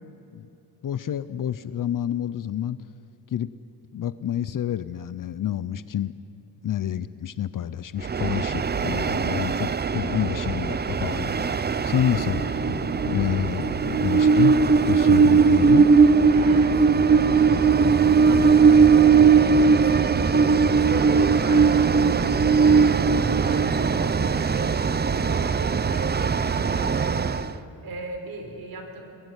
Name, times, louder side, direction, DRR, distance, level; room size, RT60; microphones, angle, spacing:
voice 1, 0.8-2.8 3.3-3.5 3.9-6.1 6.6-12.7 13.1-15.9, left 10 dB, 55° left, 15 dB, 0.7 m, -28 dB
Train, 8.0-27.5, right 5 dB, 25° right, 0.5 m, -19 dB
sound 1, 10.5-24.1, left 6 dB, 85° left, 1.5 m, -40 dB
voice 2, 16.3-22.3 22.6-29.1, right 2 dB, 60° right, 5 dB, 3.9 m, -39 dB
24.5 x 18.5 x 9.7 m, 2.9 s
wide cardioid pair, 165°, 39 cm